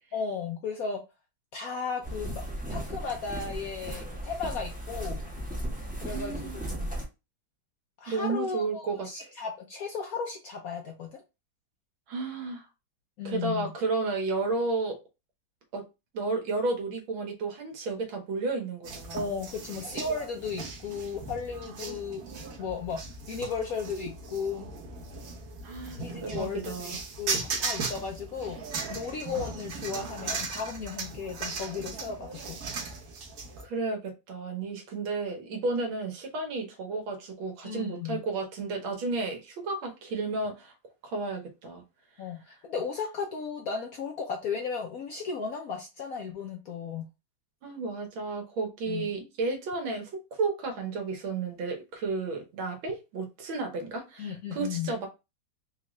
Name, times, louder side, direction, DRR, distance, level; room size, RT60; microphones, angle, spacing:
voice 1, 0.1-1.0 1.5-2.4 2.7-5.2 6.0-6.9 8.0-11.2 13.2-13.7 19.1-22.2 22.6-23.0 23.3-24.7 26.0-28.6 28.9-32.6 37.6-38.2 42.2-47.1 48.9-49.1 54.2-54.9, left 5 dB, 70° left, 0.8 m, -35 dB
sound 1, 2.0-7.0, right 1 dB, 10° right, 0.5 m, -36 dB
voice 2, 6.1-6.6 8.1-9.3 12.1-12.6 13.3-15.0 15.7-15.8 16.1-19.3 25.6-27.0 33.6-40.7 41.0-41.8 42.5-42.6 47.6-55.1, right 3 dB, 85° right, 1.8 m, -32 dB
sound 2, 18.8-33.6, right 4 dB, 55° right, 1.2 m, -37 dB
4.4 x 2.4 x 3.0 m
omnidirectional pair, 2.1 m